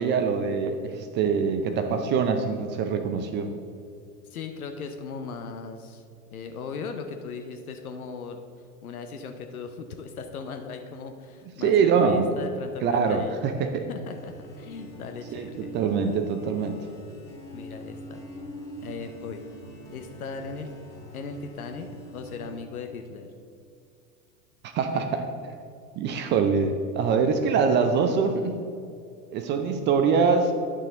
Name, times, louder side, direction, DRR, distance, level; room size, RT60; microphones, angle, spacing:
voice 1, 0.0-3.5 11.6-12.3 12.8-13.9 15.3-16.8 24.7-25.3 26.0-28.6 29.3-30.5, right 5 dB, 25° right, 7 dB, 0.5 m, -24 dB
voice 2, 4.3-6.0 6.3-8.4 8.8-13.4 13.9-15.7 17.5-18.2 18.8-19.4 19.9-20.7 21.1-21.9 22.1-23.3, left 5 dB, 70° left, 6 dB, 0.8 m, -38 dB
sound 1, 14.1-22.5, equal, 5° left, 1.8 m, -43 dB
9.8 x 6.3 x 3.8 m, 2.5 s
figure-of-eight pair, 85°, 45 cm